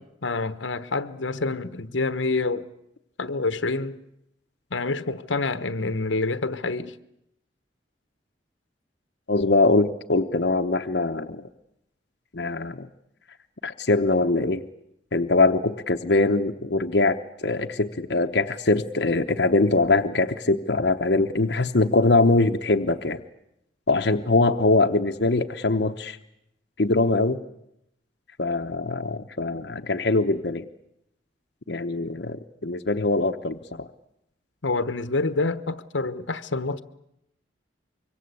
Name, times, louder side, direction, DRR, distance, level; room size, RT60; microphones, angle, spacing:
voice 1, 0.2-2.7 3.2-4.0 4.7-6.9 34.6-36.8, left 3 dB, 90° left, 1.2 m, -27 dB
voice 2, 9.3-11.5 12.3-12.9 13.6-14.6 15.1-17.2 17.4-23.2 23.9-26.2 26.8-27.4 28.4-30.7 31.7-33.9, left 2 dB, 65° left, 1.0 m, -22 dB
25.0 x 24.0 x 8.4 m
head